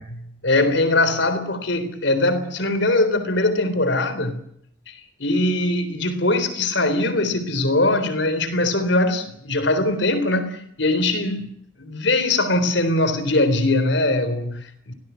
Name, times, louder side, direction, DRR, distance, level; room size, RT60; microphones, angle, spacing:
voice 1, 0.0-4.4 4.9-11.5 11.8-14.9, left 2 dB, 70° left, 3.8 m, -21 dB
25.0 x 18.5 x 8.3 m
head